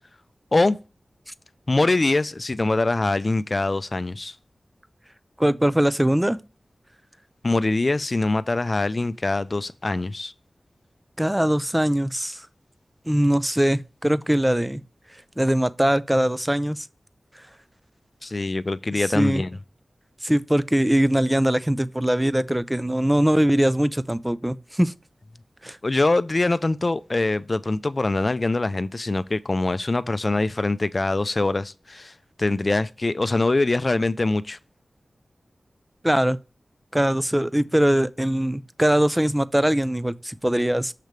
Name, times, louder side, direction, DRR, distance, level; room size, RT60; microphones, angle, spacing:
voice 1, 1.7-4.3 7.4-10.3 18.2-19.6 25.8-32.1 32.4-34.6, left 2 dB, 45° left, 0.5 m, -23 dB
voice 2, 5.4-6.4 11.2-12.5 13.1-14.8 15.4-16.9 18.9-19.4 20.2-24.9 25.6-25.8 36.0-36.4 36.9-40.9, right 1 dB, 10° right, 0.4 m, -21 dB
6.6 x 3.1 x 5.1 m
wide cardioid pair, 55°, 0 cm